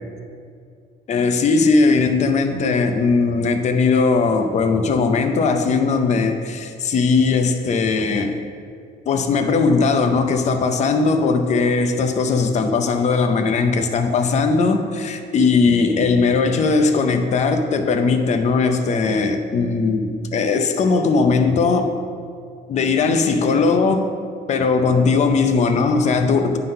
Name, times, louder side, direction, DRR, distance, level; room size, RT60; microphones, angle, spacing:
voice 1, 1.1-8.4 9.1-21.9 22.7-24.1 24.5-26.6, left 4 dB, 45° left, 6 dB, 0.6 m, -18 dB
9.2 x 3.9 x 5.4 m, 2.3 s
cardioid pair, 110°, 17 cm